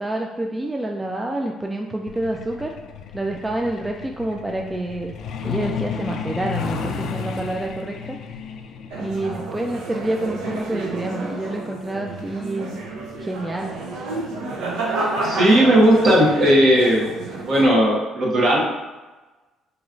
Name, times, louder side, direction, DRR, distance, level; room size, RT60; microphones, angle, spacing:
voice 1, 0.0-2.7 3.1-5.1 5.4-8.2 9.0-12.8 13.2-13.7, right 1 dB, 10° right, 1 dB, 0.3 m, -28 dB
Truck, 2.1-14.4 15.6-15.8 16.2-16.3 16.7-17.0 17.3-17.4 17.9-18.0, left 6 dB, 65° left, 0.4 m, -33 dB
sound 1, 8.9-17.7, right 2 dB, 80° right, 0.6 m, -30 dB
voice 2, 15.2-17.0 17.5-18.6, right 1 dB, 55° right, -3 dB, 1.1 m, -16 dB
4.5 x 3.1 x 2.5 m, 1.2 s
cardioid pair, 110°, 0 cm